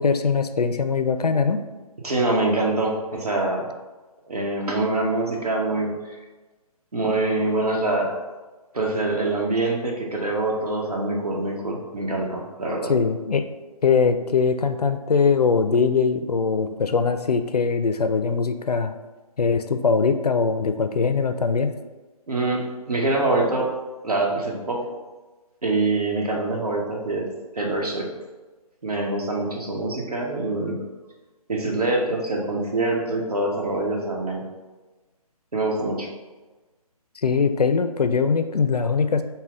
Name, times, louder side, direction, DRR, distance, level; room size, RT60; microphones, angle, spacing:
voice 1, 0.0-1.6 12.9-13.5 13.8-19.0 19.4-21.7 37.2-39.2, left 5 dB, 85° left, 9 dB, 0.4 m, -21 dB
voice 2, 2.0-3.7 4.3-5.9 6.9-8.1 8.7-12.9 22.3-23.7 24.0-24.8 25.6-27.3 27.5-28.1 28.8-30.8 31.5-34.4 35.5-36.1, right 2 dB, 75° right, -2 dB, 1.1 m, -24 dB
5.5 x 2.2 x 3.6 m, 1.2 s
figure-of-eight pair, 145°, 20 cm